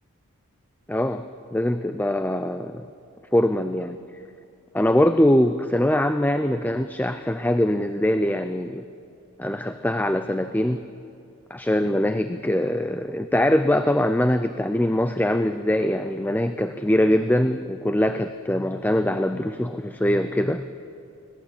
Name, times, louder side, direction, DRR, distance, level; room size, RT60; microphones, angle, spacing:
voice 1, 0.9-1.2 1.5-2.8 3.3-4.0 4.7-8.8 9.4-10.8 11.5-20.7, left 1 dB, 10° left, 9 dB, 0.5 m, -22 dB
25.0 x 18.5 x 8.5 m, 2.5 s
head